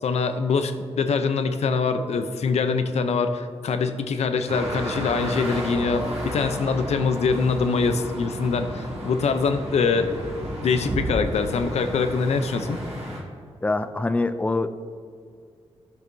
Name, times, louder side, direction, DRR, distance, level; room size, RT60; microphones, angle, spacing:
voice 1, 0.0-10.3 10.6-12.8, left 4 dB, 75° left, 8 dB, 0.6 m, -24 dB
sound 1, 4.5-13.2, right 1 dB, 70° right, 1.9 m, -33 dB
voice 2, 13.6-14.7, left 2 dB, 10° left, 11 dB, 0.4 m, -24 dB
13.0 x 6.7 x 2.7 m, 2.2 s
cardioid pair, 75°, 11 cm